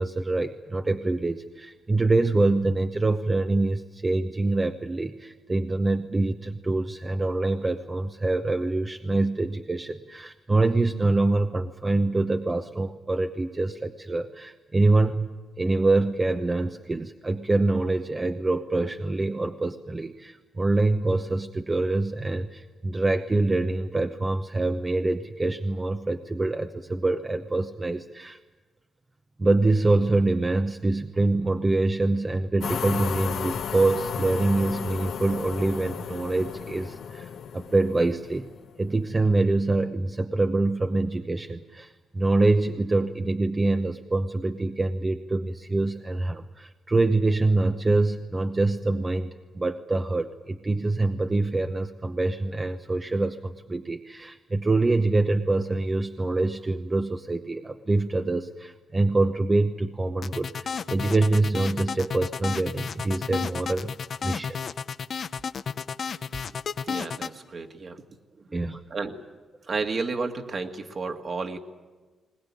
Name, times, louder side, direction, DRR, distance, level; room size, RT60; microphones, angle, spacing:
voice 1, 0.0-15.3 15.6-28.4 29.4-38.5 38.8-63.9 64.2-64.6 68.5-68.8, right 2 dB, 25° right, 6 dB, 0.9 m, -25 dB
sound 1, 32.6-38.8, left 7 dB, 75° left, 1.3 m, -34 dB
sound 2, 60.2-67.3, left 6 dB, 55° left, 0.7 m, -32 dB
voice 2, 66.9-68.0 68.4-68.5 68.9-69.2 69.7-71.6, right 4 dB, 45° right, 5 dB, 2.0 m, -32 dB
21.0 x 19.5 x 9.8 m, 1.3 s
cardioid pair, 80°, 0 cm